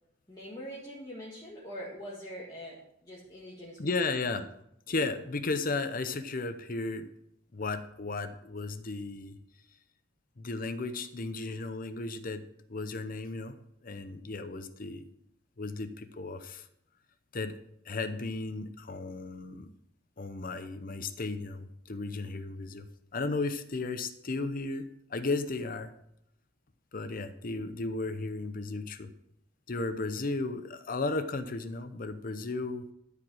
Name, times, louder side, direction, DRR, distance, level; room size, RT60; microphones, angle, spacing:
voice 1, 0.3-4.4, equal, 20° left, -7 dB, 1.9 m, -44 dB
voice 2, 3.8-4.5 4.9-7.1 7.5-9.4 10.4-12.4 12.7-15.1 15.6-16.7 17.3-17.6 17.8-19.7 20.2-22.9 23.1-25.9 26.9-29.1 29.7-32.9, left 3 dB, 45° left, 10 dB, 0.8 m, -34 dB
13.0 x 5.0 x 6.3 m, 0.76 s
head